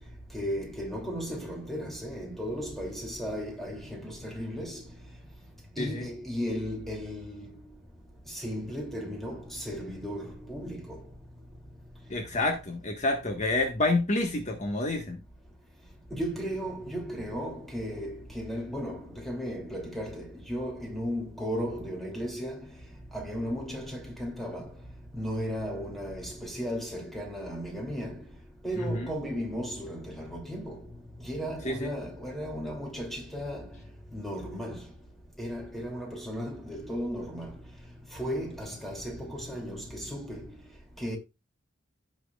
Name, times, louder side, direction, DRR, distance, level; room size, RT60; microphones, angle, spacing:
voice 1, 0.3-4.8 5.8-7.5 8.3-11.0 16.1-22.6 23.1-24.7 25.1-28.2 28.6-30.8 31.2-33.7 34.1-34.8 35.4-37.5 38.1-40.5 41.0-41.2, equal, ahead, 2.7 m, -35 dB
voice 2, 5.8-6.1 12.1-15.2 28.8-29.1 31.6-31.9, left 2 dB, 40° left, 1.4 m, -28 dB
16.0 x 6.1 x 2.4 m
head